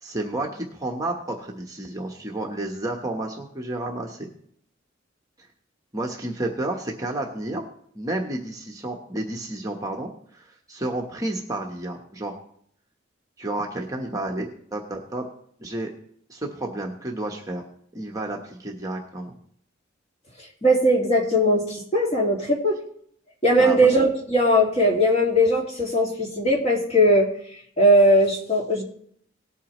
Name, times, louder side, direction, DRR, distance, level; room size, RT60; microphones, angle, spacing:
voice 1, 0.0-4.3 5.9-7.6 7.9-12.3 13.4-15.3 15.6-15.9 16.3-17.6 17.9-19.3 23.6-23.9, right 1 dB, 20° right, 1 dB, 1.1 m, -31 dB
voice 2, 20.6-22.8 23.4-27.3 27.8-28.8, equal, 35° left, 0 dB, 2.2 m, -19 dB
18.5 x 8.3 x 3.1 m, 0.64 s
head